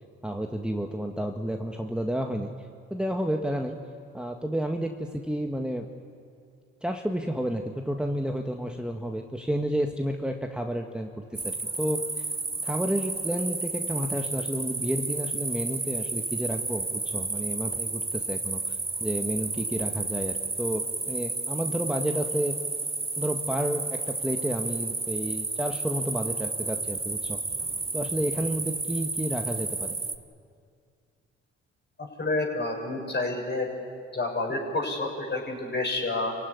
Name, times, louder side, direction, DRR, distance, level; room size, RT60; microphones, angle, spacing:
voice 1, 0.2-2.5 2.9-3.8 4.1-5.9 6.8-12.3 12.6-22.6 23.2-27.4 27.9-30.0, equal, 5° right, 3 dB, 1.8 m, -31 dB
sound 1, 11.3-30.2, right 3 dB, 20° right, 1.5 m, -32 dB
voice 2, 32.0-33.7 34.1-36.4, left 2 dB, 35° left, 1 dB, 6.7 m, -29 dB
26.5 x 16.0 x 9.9 m, 2.3 s
hypercardioid pair, 50°, 30 cm